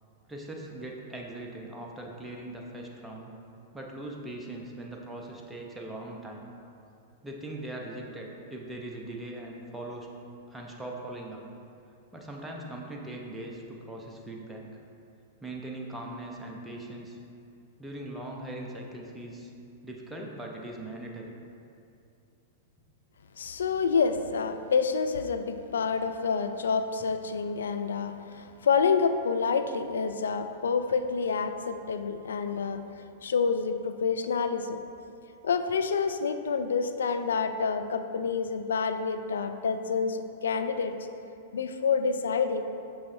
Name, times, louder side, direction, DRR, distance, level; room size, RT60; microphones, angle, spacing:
voice 1, 0.3-3.3 3.7-6.5 7.2-10.1 10.5-11.4 12.1-14.7 15.4-17.2 17.8-19.5 19.8-21.3, right 1 dB, 10° right, -1 dB, 0.8 m, -40 dB
voice 2, 23.4-34.8 35.4-40.9 41.5-42.6, left 5 dB, 80° left, 9 dB, 0.3 m, -28 dB
6.5 x 5.5 x 2.7 m, 2.5 s
hypercardioid pair, 105°, 0 cm